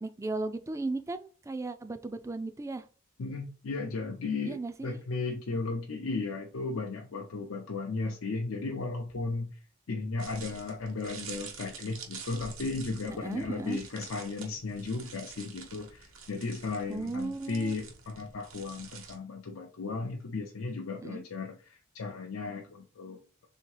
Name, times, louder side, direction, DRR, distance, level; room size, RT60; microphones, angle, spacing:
voice 1, 0.0-2.9 4.5-4.9 13.1-13.8 16.9-17.7 21.0-21.2, right 3 dB, 15° right, 10 dB, 0.3 m, -36 dB
voice 2, 3.2-9.6 9.9-23.5, left 3 dB, 85° left, 1 dB, 0.6 m, -35 dB
sound 1, 10.2-19.2, right 5 dB, 80° right, 1.1 m, -47 dB
3.6 x 2.8 x 4.6 m, 0.41 s
head